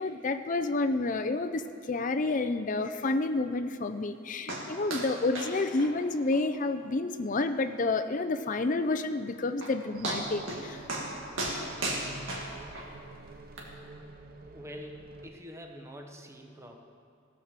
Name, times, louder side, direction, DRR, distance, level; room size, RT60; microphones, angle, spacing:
voice 1, 0.0-10.8, left 3 dB, 40° left, 10 dB, 0.5 m, -29 dB
sound 1, 4.5-4.7 4.9-5.1 5.4-5.5 5.8-5.9 6.3-6.4 6.8-6.9 7.4-7.5 9.2-9.3 9.6-9.7 10.0-10.6 10.9-11.1 11.4-12.9 13.6-13.7, right 2 dB, 75° right, 2.2 m, -34 dB
sound 2, 9.9-15.3, right 2 dB, 50° right, 0.7 m, -48 dB
voice 2, 14.4-16.8, equal, 15° right, 3 dB, 0.9 m, -46 dB
16.5 x 6.4 x 7.4 m, 2.5 s
head